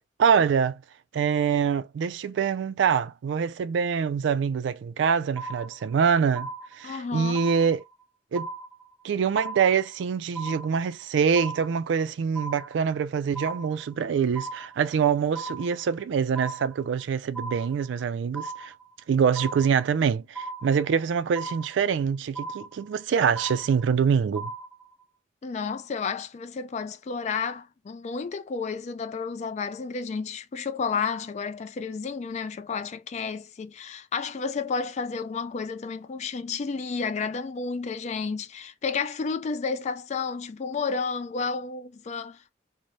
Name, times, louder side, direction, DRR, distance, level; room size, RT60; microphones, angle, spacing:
voice 1, 0.2-0.8 1.1-6.5 6.8-7.8 8.3-8.5 9.0-18.7 19.1-24.5, right 6 dB, 90° right, 0.3 m, -25 dB
sound 1, 5.4-6.0 6.4-7.0 7.4-8.0 8.4-9.0 9.4-10.0 10.4-11.0 11.4-12.0 12.4-13.0 13.4-14.0 14.4-15.0 15.4-16.0 16.4-17.0 17.3-18.0 18.3-19.0 19.4-20.0 20.4-21.0 21.4-22.0 22.4-23.0 23.4-24.0 24.4-25.0, right 4 dB, 5° left, 1.3 m, -37 dB
voice 2, 6.8-7.4 25.4-42.5, left 5 dB, 40° left, 0.3 m, -31 dB
3.2 x 2.1 x 2.5 m
head